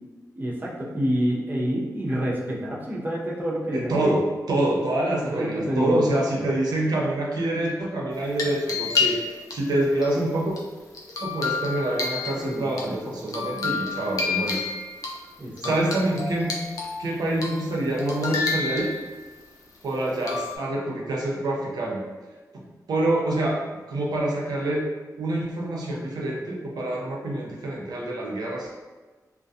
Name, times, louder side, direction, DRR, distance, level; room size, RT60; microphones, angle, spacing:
voice 1, 0.4-4.1 5.2-6.0 12.4-12.7 13.5-13.9 15.4-15.7, equal, 30° right, -5 dB, 0.5 m, -28 dB
voice 2, 3.7-10.5 11.2-14.6 15.6-16.5 17.0-18.9 19.8-22.0 22.5-23.6 23.9-24.8 25.2-28.7, right 1 dB, 80° right, -2 dB, 0.5 m, -26 dB
sound 1, 8.1-9.5 10.0-12.8 13.3-15.1 15.6-17.0 17.4-17.7 18.0-19.3 20.3-20.6, left 4 dB, 60° left, 0.4 m, -30 dB
2.3 x 2.2 x 2.6 m, 1.3 s
wide cardioid pair, 155°, 7 cm